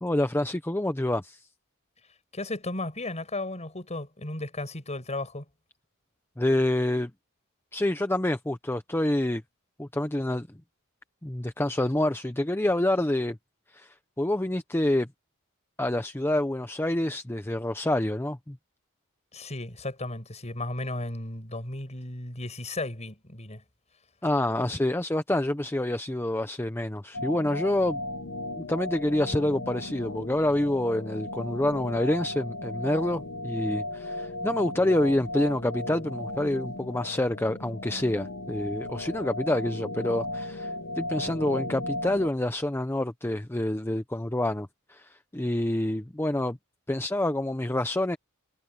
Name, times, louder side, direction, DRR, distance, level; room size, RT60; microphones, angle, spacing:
voice 1, 0.0-1.4 6.4-7.1 7.7-9.4 9.8-10.5 11.2-13.4 13.7-15.1 15.8-18.6 24.2-28.0 28.6-40.7 41.0-46.6 46.9-48.2, left 1 dB, 10° left, 0.8 m, -27 dB
voice 2, 2.3-5.4 19.3-23.6, left 2 dB, 30° left, 5.9 m, -35 dB
sound 1, 27.1-42.3, left 1 dB, 55° left, 1.4 m, -36 dB
head